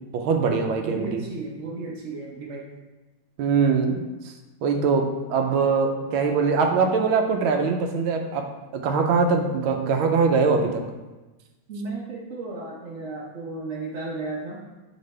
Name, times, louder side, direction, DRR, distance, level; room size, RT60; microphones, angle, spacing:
voice 1, 0.1-1.2 3.4-4.0 4.6-8.4 8.7-10.8, right 5 dB, 80° right, 4 dB, 1.5 m, -22 dB
voice 2, 0.8-2.7 11.7-14.6, right 3 dB, 55° right, -4 dB, 0.8 m, -34 dB
6.6 x 5.1 x 3.2 m, 1.1 s
omnidirectional pair, 2.3 m